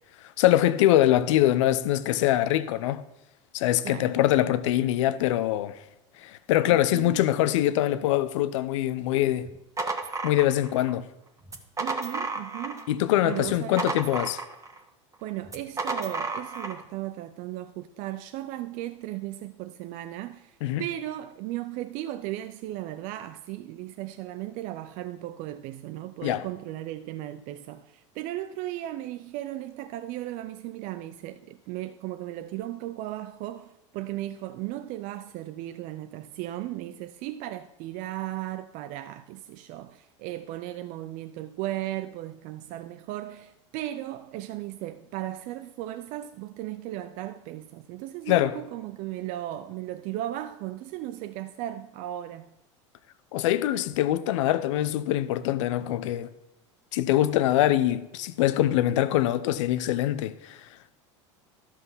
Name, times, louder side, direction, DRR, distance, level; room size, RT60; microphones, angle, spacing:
voice 1, 0.2-3.0 3.5-5.8 6.2-9.5 10.2-11.1 12.9-14.4 20.6-20.8 26.2-26.4 48.3-48.6 53.3-56.3 56.9-60.7, left 13 dB, 75° left, 0.7 m, -24 dB
voice 2, 3.8-4.2 6.7-7.2 11.8-12.9 13.2-13.8 15.2-52.5, right 14 dB, 55° right, 0.5 m, -36 dB
sound 1, 9.4-10.9 11.4-12.9 13.2-14.8 15.5-16.8, right 3 dB, 20° right, 1.4 m, -32 dB
12.5 x 5.8 x 5.6 m
hypercardioid pair, 95°, 16 cm